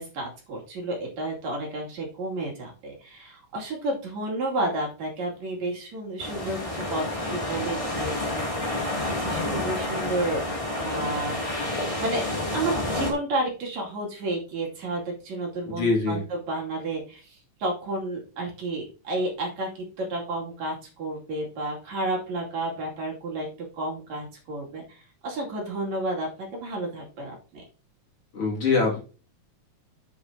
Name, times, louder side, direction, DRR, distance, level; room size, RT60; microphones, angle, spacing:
voice 1, 0.0-10.4 10.8-23.5 23.8-27.6, right 2 dB, 65° right, -1 dB, 3.8 m, -31 dB
sound 1, 6.2-13.1, left 1 dB, 10° left, 2.1 m, -29 dB
voice 2, 15.7-16.2 28.3-29.0, left 4 dB, 50° left, -2 dB, 3.1 m, -24 dB
9.5 x 8.2 x 2.8 m, 0.36 s
omnidirectional pair, 3.5 m